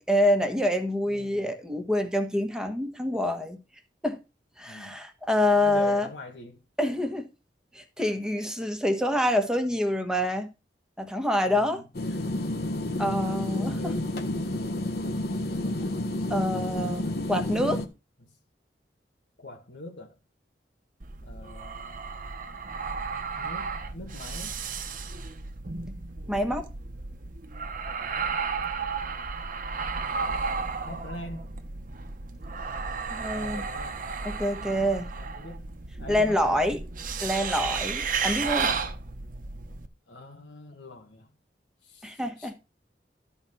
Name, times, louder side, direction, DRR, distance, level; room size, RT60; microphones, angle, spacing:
voice 1, 0.1-3.6 4.0-4.2 4.6-6.1 6.8-7.3 7.7-10.5 11.0-11.8 13.0-13.8 16.3-17.8 26.3-26.7 33.1-33.6 34.2-35.1 36.1-36.8 37.2-38.7 42.0-42.5, left 1 dB, 5° right, 1.4 m, -26 dB
voice 2, 1.1-1.5 4.6-5.0 5.6-6.6 11.5-11.8 13.0-14.1 18.2-18.3 19.4-20.1 21.2-22.0 22.9-23.0 23.4-24.6 28.0-28.4 29.7-30.0 30.8-31.5 33.2-34.1 34.6-35.7 36.0-36.8 38.1-38.6 40.1-41.3 41.8-42.5, left 1 dB, 90° left, 1.8 m, -44 dB
sound 1, 11.9-17.9, left 1 dB, 65° left, 1.4 m, -30 dB
sound 2, 21.0-39.9, right 5 dB, 50° right, 1.0 m, -33 dB
12.5 x 4.5 x 5.7 m
head